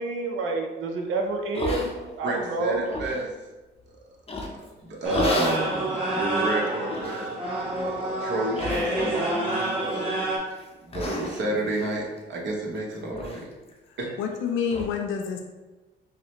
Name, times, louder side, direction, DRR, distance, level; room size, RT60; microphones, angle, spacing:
voice 1, 0.0-1.9 2.2-2.9, right 3 dB, 80° right, 3 dB, 0.6 m, -28 dB
sound 1, 1.5-2.3 2.7-3.2 4.3-4.7 5.1-5.7 6.2-6.3 6.9-7.3 7.7-8.0 8.6-9.3 9.6-10.1 10.5-10.7 10.9-12.8 13.1-13.4 13.7-13.8 14.2-14.3 14.7-14.9, left 2 dB, 30° left, 0.6 m, -33 dB
voice 2, 2.2-3.3 3.9-4.0 4.8-10.2 10.8-13.5 14.0-14.1, right 1 dB, 65° right, -2 dB, 1.0 m, -30 dB
sound 2, 5.0-10.4, right 1 dB, 25° right, 1.4 m, -28 dB
voice 3, 13.9-15.4, left 7 dB, 75° left, 3 dB, 0.4 m, -28 dB
4.8 x 2.1 x 2.9 m, 1.2 s
cardioid pair, 90°, 20 cm